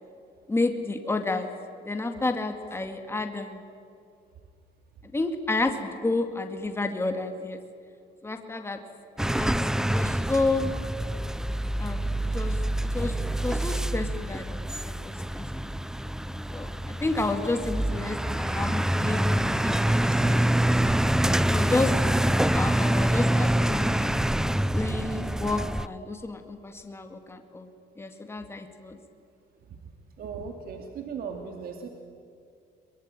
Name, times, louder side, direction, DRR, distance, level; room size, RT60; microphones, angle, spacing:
voice 1, 0.5-1.5 1.8-3.6 5.1-7.6 8.2-8.8 9.3-9.6 9.9-10.7 11.8-12.6 12.9-13.1 13.4-14.5 14.8-15.4 16.5-20.0 21.2-21.9 22.5-24.1 24.7-27.7 28.0-29.0, left 3 dB, 15° left, 5 dB, 2.3 m, -30 dB
sound 1, 9.2-25.9, right 1 dB, 5° right, 0.6 m, -26 dB
voice 2, 30.2-31.9, right 6 dB, 65° right, 4 dB, 2.6 m, -37 dB
23.5 x 22.5 x 9.1 m, 2.4 s
cardioid pair, 110°, 17 cm